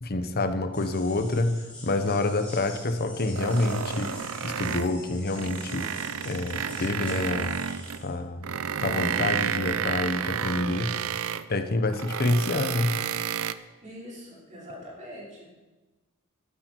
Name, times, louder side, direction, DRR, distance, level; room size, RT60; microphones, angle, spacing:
voice 1, 0.0-4.2 4.4-5.9 6.2-7.6 8.0-8.5 8.8-11.0 11.5-13.0, left 2 dB, 45° left, 8 dB, 1.0 m, -27 dB
sound 1, 0.7-8.1, left 2 dB, 5° left, 4.3 m, -46 dB
sound 2, 3.4-5.0 5.3-8.0 8.4-11.5 11.9-13.5, right 8 dB, 65° right, 0.6 m, -31 dB
voice 2, 13.8-15.5, equal, 35° right, -5 dB, 5.0 m, -43 dB
13.0 x 12.0 x 4.7 m, 1.2 s
head